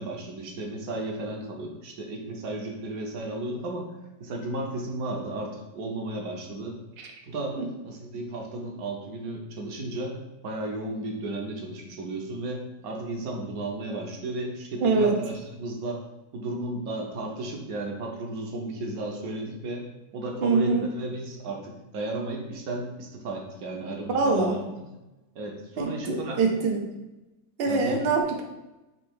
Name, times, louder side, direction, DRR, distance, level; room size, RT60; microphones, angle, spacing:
voice 1, 0.0-3.9 4.2-6.8 7.2-10.2 10.4-16.0 16.3-19.9 20.1-24.9 25.3-26.4 27.7-28.0, right 2 dB, 65° right, 1 dB, 1.1 m, -34 dB
voice 2, 14.8-15.2 20.4-20.9 24.1-24.6 25.8-26.8 27.6-28.4, right 3 dB, 80° right, 2 dB, 0.5 m, -24 dB
4.2 x 2.7 x 4.4 m, 1.0 s
omnidirectional pair, 1.9 m